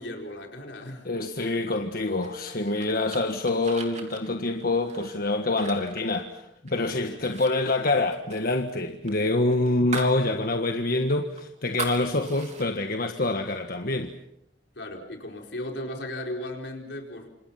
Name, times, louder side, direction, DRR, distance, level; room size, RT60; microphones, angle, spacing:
voice 1, 0.0-1.1 7.0-7.3 14.8-17.3, left 1 dB, 70° left, 2 dB, 4.7 m, -36 dB
voice 2, 1.0-14.1, left 2 dB, 55° left, 5 dB, 1.5 m, -26 dB
sound 1, 2.2-6.8 7.2-7.5 7.8-10.2 10.6-10.7 11.1-12.7, right 5 dB, 40° right, 3.7 m, -39 dB
28.5 x 27.0 x 5.8 m, 0.78 s
head